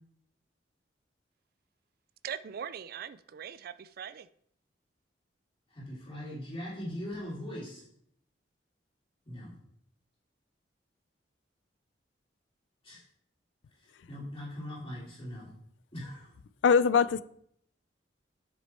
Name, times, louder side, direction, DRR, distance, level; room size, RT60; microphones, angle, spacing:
voice 1, 2.2-4.3, right 8 dB, 55° right, 0.4 m, -41 dB
voice 2, 5.7-7.8 9.2-9.5 12.8-13.0 13.8-15.5 15.9-16.3, left 1 dB, 30° left, 2.6 m, -40 dB
voice 3, 16.6-17.2, left 6 dB, 80° left, 0.4 m, -22 dB
7.4 x 6.1 x 4.3 m
head